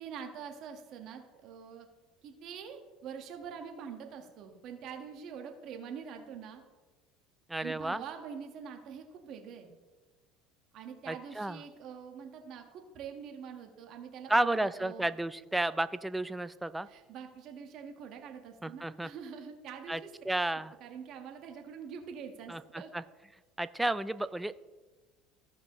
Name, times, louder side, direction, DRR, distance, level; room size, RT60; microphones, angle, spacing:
voice 1, 0.0-1.9 2.2-6.6 7.6-9.7 10.7-15.1 16.9-20.1 20.8-22.9, right 7 dB, 55° right, 4 dB, 1.5 m, -45 dB
voice 2, 7.5-8.0 11.1-11.6 14.3-16.9 18.6-19.1 19.9-20.0 20.3-20.7 22.5-23.0 23.6-24.5, right 1 dB, 10° right, 14 dB, 0.4 m, -32 dB
15.5 x 5.3 x 3.1 m, 1.2 s
supercardioid pair, 90°, 0 cm